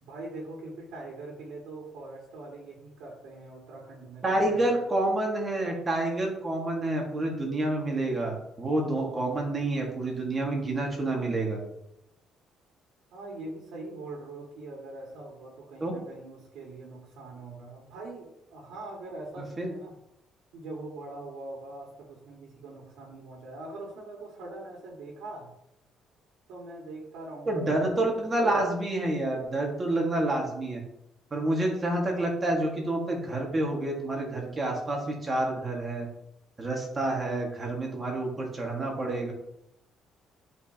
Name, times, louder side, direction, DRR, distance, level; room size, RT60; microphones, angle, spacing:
voice 1, 0.0-4.8 13.1-20.0 20.5-25.5 26.5-28.0, right 2 dB, 85° right, -3 dB, 2.0 m, -42 dB
voice 2, 4.2-11.6 15.8-15.9 19.4-19.7 27.5-30.8 31.3-36.1 36.6-39.3, right 1 dB, 20° right, 0 dB, 1.7 m, -28 dB
11.0 x 4.8 x 2.9 m, 0.81 s
cardioid pair, 165°, 0 cm